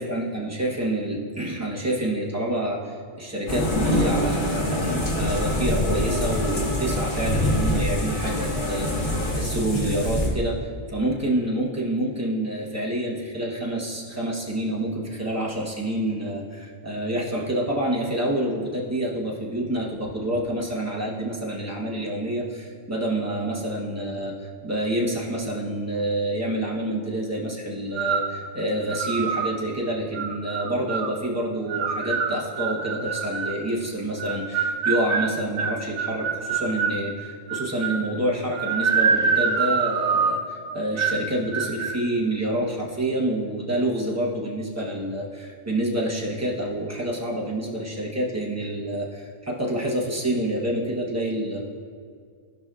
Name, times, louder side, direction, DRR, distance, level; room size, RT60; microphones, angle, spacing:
voice 1, 0.0-51.6, right 1 dB, 15° right, -3 dB, 1.0 m, -28 dB
sound 1, 3.5-9.3, equal, 80° left, 2.3 m, -34 dB
sound 2, 3.5-10.3, left 1 dB, 65° left, 1.6 m, -25 dB
sound 3, 27.9-28.4 28.9-29.5 30.1-31.1 31.7-33.6 34.2-37.0 37.5-38.1 38.5-40.5 41.0-41.3 41.5-42.0, right 6 dB, 75° right, 0.9 m, -25 dB
15.5 x 5.2 x 2.4 m, 2.1 s
omnidirectional pair, 1.2 m